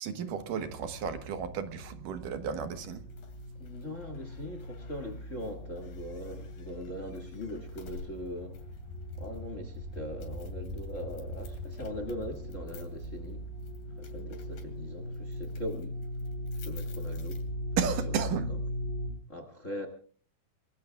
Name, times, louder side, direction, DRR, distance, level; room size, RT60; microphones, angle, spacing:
voice 1, 0.0-3.1 17.8-18.6, right 6 dB, 75° right, 2.9 m, -33 dB
sound 1, 0.7-19.1, equal, 35° right, 4.6 m, -40 dB
sound 2, 2.9-17.9, left 5 dB, 90° left, 4.3 m, -55 dB
voice 2, 3.6-8.6 9.2-13.4 14.0-16.0 16.6-17.4 18.1-18.2 19.3-19.9, left 1 dB, 30° left, 1.6 m, -41 dB
sound 3, 8.3-14.3, left 1 dB, 5° right, 6.5 m, -44 dB
28.5 x 20.0 x 2.3 m
omnidirectional pair, 3.9 m